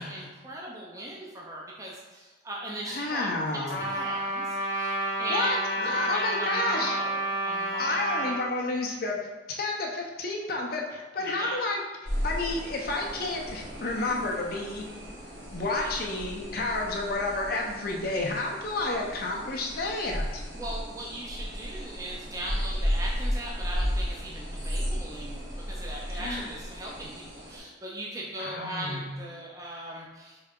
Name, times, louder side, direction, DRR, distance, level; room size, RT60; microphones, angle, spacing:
voice 1, 0.0-3.3 3.9-8.1 11.2-11.6 15.7-15.9 20.5-30.4, right 1 dB, 15° right, -3 dB, 0.4 m, -39 dB
voice 2, 2.9-3.8 5.3-7.0 7.8-9.2 9.5-14.8 15.5-20.4 26.1-26.5 28.4-29.2, left 2 dB, 50° left, 0 dB, 0.6 m, -31 dB
Trumpet, 3.7-8.4, right 2 dB, 75° left, 0.9 m, -30 dB
sound 1, 12.1-27.6, equal, 70° right, 1.4 m, -34 dB
3.8 x 3.3 x 3.6 m, 1.3 s
head